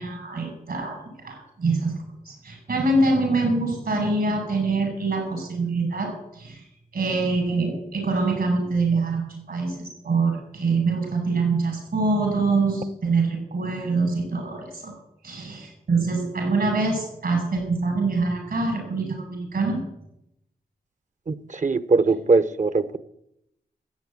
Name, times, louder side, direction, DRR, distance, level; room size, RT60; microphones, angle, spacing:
voice 1, 0.0-1.9 2.2-6.6 6.9-14.9 15.2-19.8, right 3 dB, 75° right, 2 dB, 6.0 m, -25 dB
voice 2, 21.3-23.0, right 3 dB, 50° right, 13 dB, 1.0 m, -21 dB
13.5 x 8.6 x 8.5 m, 0.81 s
cardioid pair, 45°, 16 cm